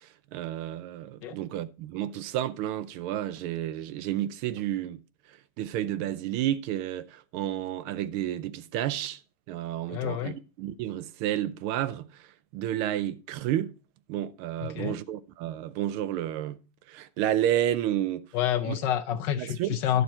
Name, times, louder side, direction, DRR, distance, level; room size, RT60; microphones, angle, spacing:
voice 1, 0.0-5.0 5.3-9.2 9.5-12.3 12.5-13.7 14.1-18.3 18.6-18.8 19.4-19.7, right 12 dB, 85° right, 1.5 m, -31 dB
voice 2, 9.9-10.4 14.6-15.0 18.3-20.0, left 10 dB, 70° left, 1.2 m, -28 dB
11.0 x 6.5 x 4.3 m
omnidirectional pair, 2.3 m